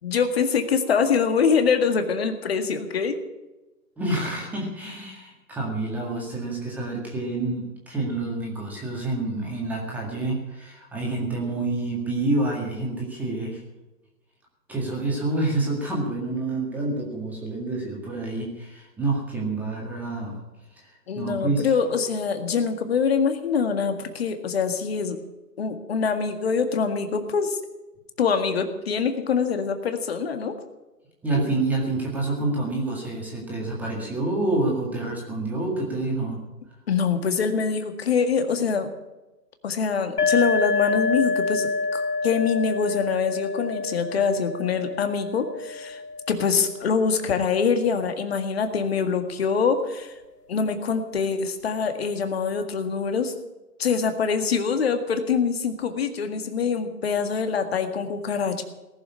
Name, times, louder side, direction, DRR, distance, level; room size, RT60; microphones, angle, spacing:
voice 1, 0.0-3.2 10.2-10.3 21.1-25.2 25.6-27.6 28.2-30.6 36.9-38.9 39.6-46.0 46.3-50.2 50.5-53.3 53.8-58.6, left 5 dB, 40° left, 7 dB, 1.9 m, -24 dB
voice 2, 4.0-13.6 14.7-20.4 20.8-21.7 31.2-36.4, right 2 dB, 5° right, -3 dB, 1.9 m, -28 dB
E flat Tibetan singing bowl struck, 40.2-47.7, left 3 dB, 70° left, 1.5 m, -28 dB
19.0 x 7.4 x 9.7 m, 1.1 s
figure-of-eight pair, 155°, 48 cm